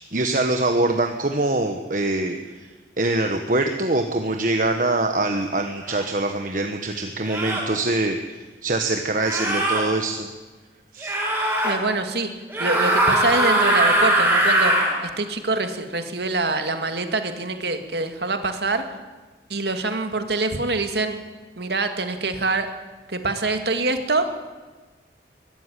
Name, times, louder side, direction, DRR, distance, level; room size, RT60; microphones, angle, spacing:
voice 1, 0.0-2.7 3.0-10.3 10.9-11.2, right 2 dB, 45° right, 5 dB, 1.3 m, -24 dB
sound 1, 5.9-6.0 7.2-7.7 9.2-9.8 11.0-11.7 12.5-14.9, right 1 dB, 10° right, 5.5 m, -20 dB
voice 2, 11.6-12.3 12.6-14.7 15.0-18.8 19.5-21.2 21.6-22.7 23.1-24.3, right 3 dB, 65° right, 7 dB, 2.2 m, -25 dB
22.0 x 13.5 x 10.0 m, 1.3 s
head